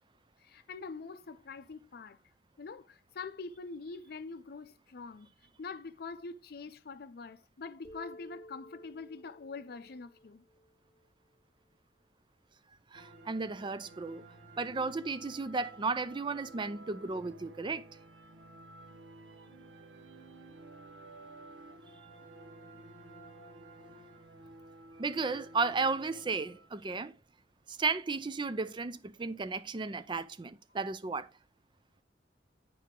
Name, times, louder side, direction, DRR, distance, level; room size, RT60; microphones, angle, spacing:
voice 1, 0.4-2.2 2.6-5.3 5.6-10.4, left 4 dB, 60° left, 0.5 m, -44 dB
sound 1, 7.8-11.4, equal, 15° left, 2.7 m, -54 dB
voice 2, 12.9-14.2 14.6-17.9 25.0-27.1 27.7-31.3, right 4 dB, 25° right, 0.4 m, -34 dB
sound 2, 12.9-26.8, right 2 dB, 85° right, 0.9 m, -53 dB
9.2 x 4.7 x 3.7 m
head